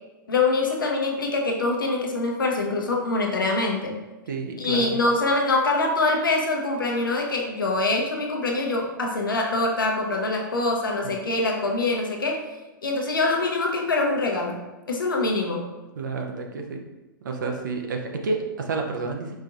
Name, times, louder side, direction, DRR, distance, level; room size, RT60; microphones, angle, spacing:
voice 1, 0.3-3.9 4.6-12.4 12.8-14.6 14.9-15.7, left 2 dB, 75° left, 1 dB, 0.7 m, -24 dB
voice 2, 4.3-5.0 16.0-16.8 17.2-19.3, right 4 dB, 65° right, 2 dB, 0.6 m, -30 dB
5.0 x 2.6 x 2.5 m, 1.1 s
figure-of-eight pair, 105°, 11 cm